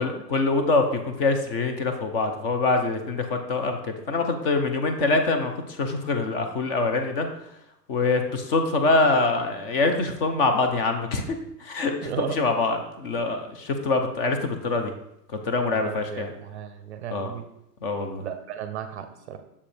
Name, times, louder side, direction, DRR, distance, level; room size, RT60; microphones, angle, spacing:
voice 1, 0.0-7.3 7.9-14.9 15.4-16.3 17.1-17.3 17.8-18.2, left 3 dB, 35° left, 6 dB, 0.7 m, -24 dB
voice 2, 12.0-12.4 15.7-17.5 18.2-19.4, right 9 dB, 45° right, 9 dB, 0.5 m, -35 dB
6.8 x 4.9 x 3.4 m, 0.82 s
hypercardioid pair, 145°, 48 cm